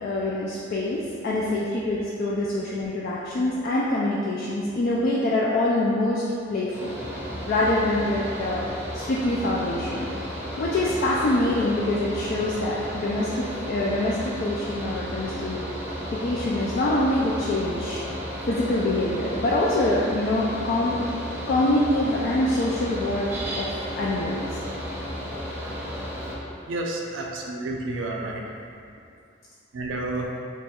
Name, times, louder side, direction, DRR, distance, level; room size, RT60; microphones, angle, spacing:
voice 1, 0.0-6.2 6.5-7.0 7.5-10.1 10.6-15.7 16.1-18.0 18.5-23.3 23.5-24.6, left 1 dB, 50° left, -6 dB, 0.3 m, -25 dB
Mechanical fan, 6.7-26.4, equal, 10° right, 0.6 m, -33 dB
voice 2, 26.7-28.4 29.7-30.3, right 2 dB, 80° right, 0 dB, 0.5 m, -30 dB
2.9 x 2.3 x 4.2 m, 2.4 s
head